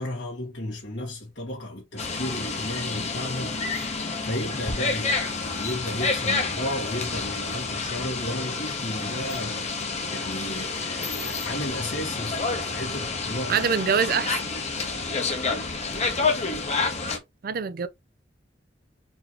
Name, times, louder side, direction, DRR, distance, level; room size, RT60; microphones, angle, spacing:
voice 1, 0.0-3.6 4.0-9.7 10.1-13.6, left 1 dB, 80° left, 1.6 m, -34 dB
sound 1, 2.0-17.2, left 4 dB, 35° left, 0.8 m, -29 dB
voice 2, 13.5-14.4 17.4-17.9, right 6 dB, 50° right, 0.4 m, -24 dB
4.4 x 2.8 x 3.0 m
head